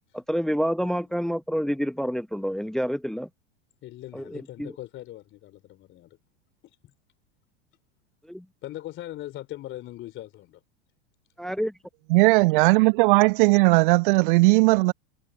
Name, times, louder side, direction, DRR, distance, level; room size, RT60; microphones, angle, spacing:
voice 1, 0.1-3.3 4.1-4.7 8.3-8.4 11.4-11.7, equal, ahead, 0.8 m, -28 dB
voice 2, 3.8-6.2 8.6-10.6, left 14 dB, 40° left, 3.6 m, -40 dB
voice 3, 12.1-14.9, right 25 dB, 50° right, 0.8 m, -18 dB
figure-of-eight pair, 90°, 32 cm